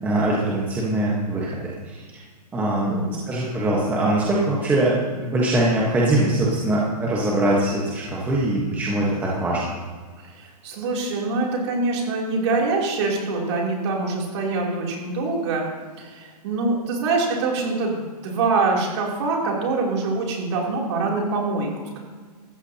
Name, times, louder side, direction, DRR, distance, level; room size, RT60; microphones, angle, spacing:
voice 1, 0.0-2.0 2.5-9.6, right 1 dB, 10° right, -5 dB, 1.3 m, -22 dB
voice 2, 2.8-3.3 10.2-15.7 16.0-21.7, right 3 dB, 40° right, -2 dB, 3.2 m, -24 dB
16.0 x 14.0 x 2.9 m, 1.5 s
hypercardioid pair, 160°, 21 cm